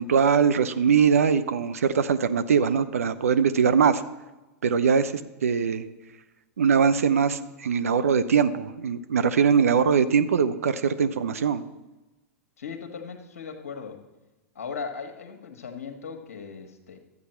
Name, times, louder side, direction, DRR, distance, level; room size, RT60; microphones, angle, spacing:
voice 1, 0.0-4.0 4.6-5.1 5.4-5.8 6.6-11.6, right 6 dB, 75° right, 12 dB, 0.6 m, -22 dB
voice 2, 12.6-14.0 14.5-17.0, left 5 dB, 70° left, 5 dB, 1.4 m, -38 dB
12.0 x 8.3 x 4.4 m, 1.1 s
figure-of-eight pair, 100°, 8 cm